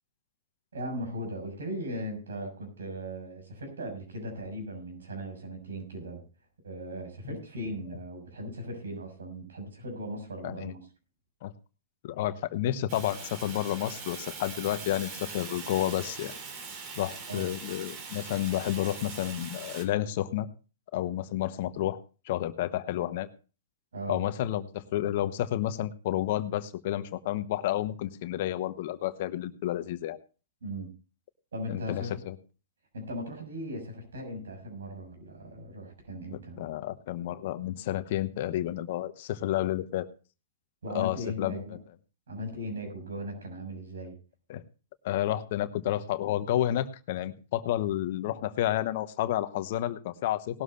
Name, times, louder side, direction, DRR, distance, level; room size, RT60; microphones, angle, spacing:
voice 1, 0.7-6.2 6.6-10.8 17.3-17.4 23.9-24.2 30.6-30.9 31.5-32.2 32.9-36.6 40.8-41.8 42.3-44.1, equal, 75° right, 3 dB, 6.4 m, -38 dB
voice 2, 12.0-16.3 17.0-20.5 20.9-22.0 22.3-23.3 24.1-30.2 31.7-32.3 36.3-40.1 40.9-41.6 44.5-44.6 45.0-50.6, left 13 dB, 50° left, 12 dB, 1.0 m, -30 dB
Fire, 12.9-19.8, right 4 dB, 40° right, 3.5 m, -42 dB
18.5 x 12.5 x 2.6 m, 0.34 s
hypercardioid pair, 115°, 0 cm